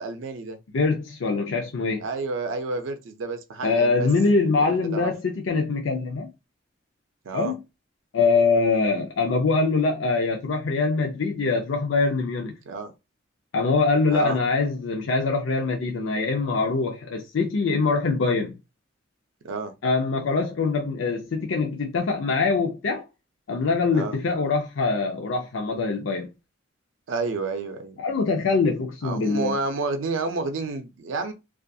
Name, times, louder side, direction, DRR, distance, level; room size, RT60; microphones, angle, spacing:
voice 1, 0.0-0.6 2.0-4.1 4.6-5.1 7.2-7.5 12.7-12.9 14.1-14.4 19.4-19.7 23.9-24.2 27.1-28.0 29.0-31.3, right 3 dB, 85° right, 0.5 m, -30 dB
voice 2, 0.7-2.0 3.6-6.3 7.3-7.6 8.1-12.6 13.5-18.5 19.8-23.0 23.5-26.3 28.0-29.6, left 4 dB, 80° left, 0.5 m, -23 dB
2.4 x 2.3 x 2.6 m
head